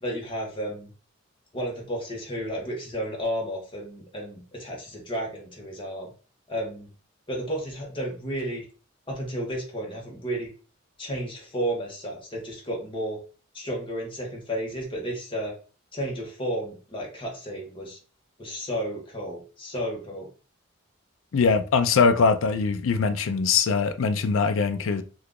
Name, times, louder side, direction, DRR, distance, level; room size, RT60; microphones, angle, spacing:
voice 1, 0.0-0.9 1.5-6.1 6.5-6.9 7.3-8.6 9.1-10.5 11.0-13.2 13.5-15.5 15.9-18.0 18.4-20.3, equal, 25° left, 1.1 m, -32 dB
voice 2, 21.3-25.0, left 5 dB, 85° left, 0.4 m, -22 dB
2.8 x 2.4 x 3.6 m
head